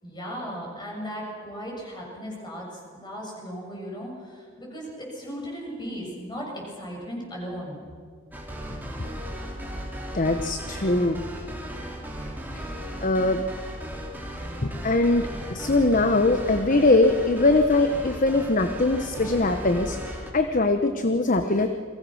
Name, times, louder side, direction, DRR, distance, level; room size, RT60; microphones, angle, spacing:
voice 1, 0.0-7.9, equal, 20° left, -2 dB, 7.4 m, -36 dB
sound 1, 8.3-20.3, equal, 10° right, 3.1 m, -36 dB
voice 2, 10.1-11.2 12.5-12.7 13.0-13.4 14.6-21.7, left 2 dB, 40° left, 8 dB, 1.0 m, -22 dB
29.5 x 23.0 x 6.4 m, 2.1 s
head